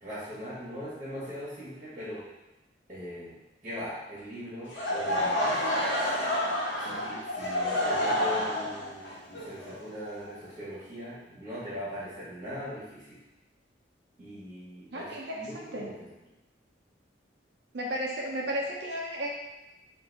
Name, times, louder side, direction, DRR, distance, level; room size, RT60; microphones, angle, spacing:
voice 1, 0.0-2.2 2.9-3.3 3.6-5.4 6.4-13.2 14.2-16.1, equal, 30° right, -9 dB, 1.3 m, -40 dB
Laughter / Crowd, 4.7-10.6, left 1 dB, 85° left, 1.0 m, -29 dB
voice 2, 14.9-15.9 17.7-19.3, equal, 65° right, -3 dB, 0.7 m, -34 dB
3.9 x 2.7 x 4.0 m, 0.98 s
head